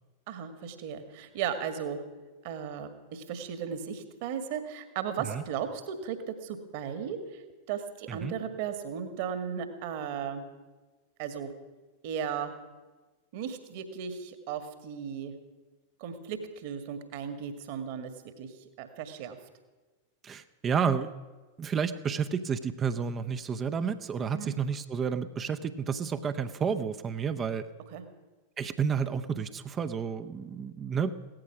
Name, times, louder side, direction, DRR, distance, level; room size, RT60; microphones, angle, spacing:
voice 1, 0.3-2.0 2.4-7.4 7.7-10.5 11.2-11.5 12.0-12.5 13.3-15.3 16.0-18.1 18.4-19.4 24.3-24.5 27.9-28.0, right 7 dB, 50° right, 9 dB, 1.8 m, -36 dB
voice 2, 20.2-21.1 21.6-27.7 28.6-31.1, right 6 dB, 25° right, 9 dB, 0.7 m, -31 dB
17.0 x 13.5 x 6.1 m, 1.3 s
figure-of-eight pair, 90°, 0 cm